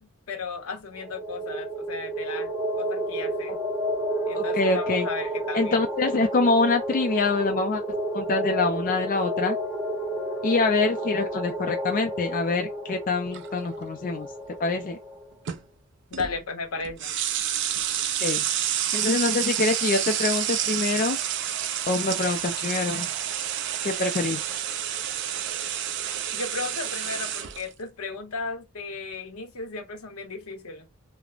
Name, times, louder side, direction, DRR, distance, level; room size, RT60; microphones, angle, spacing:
voice 1, 0.0-2.5 2.8-3.5 4.3-5.8 7.9-8.0 16.1-17.1 26.0-30.9, left 4 dB, 85° left, 0.8 m, -35 dB
sound 1, 0.9-15.3, right 1 dB, 15° right, 1.0 m, -31 dB
voice 2, 4.3-5.1 5.5-7.8 8.1-9.6 10.4-14.3 14.6-15.0 18.2-18.4 18.9-21.2 21.9-23.1 23.8-24.4, left 3 dB, 40° left, 0.3 m, -25 dB
sound 2, 13.3-13.7 15.5-15.6 16.1-16.4 16.8-27.6, right 10 dB, 55° right, 0.3 m, -29 dB
3.1 x 2.0 x 2.4 m
head